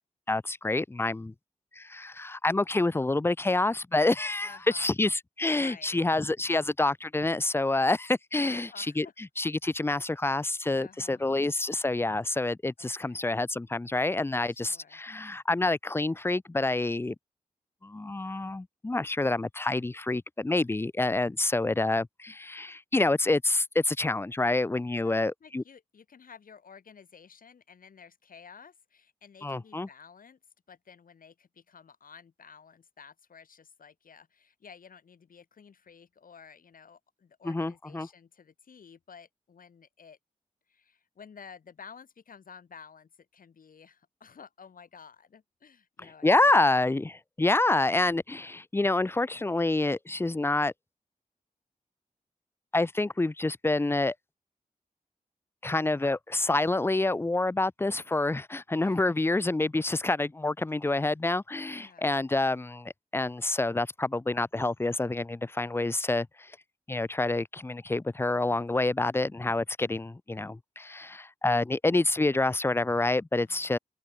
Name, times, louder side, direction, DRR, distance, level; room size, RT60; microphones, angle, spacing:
voice 1, 0.3-1.3 1.8-9.1 9.4-17.2 17.8-25.6 29.4-29.9 37.4-38.1 46.2-50.7 52.7-54.1 55.6-66.5 66.9-73.8, left 2 dB, 15° left, 0.4 m, -27 dB
voice 2, 4.4-4.9 5.5-6.0 8.4-9.1 10.7-11.2 12.8-13.3 14.7-15.0 25.0-30.4 30.7-40.2 40.7-46.6 58.8-59.2 61.8-62.1 73.3-73.7, left 6 dB, 75° left, 1.7 m, -52 dB
open air
cardioid pair, 45°, 14 cm